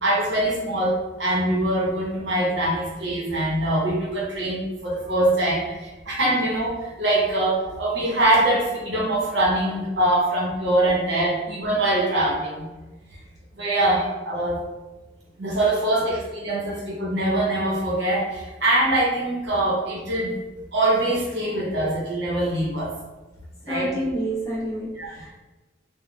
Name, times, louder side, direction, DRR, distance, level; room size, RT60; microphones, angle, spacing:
voice 1, 0.0-5.7 6.1-12.7 13.6-14.6 15.4-20.3 20.7-22.9 23.6-23.9 25.0-25.1, right 1 dB, 65° right, -4 dB, 0.8 m, -23 dB
voice 2, 23.7-25.4, right 1 dB, 15° left, -8 dB, 0.8 m, -29 dB
3.7 x 2.2 x 2.3 m, 1.1 s
head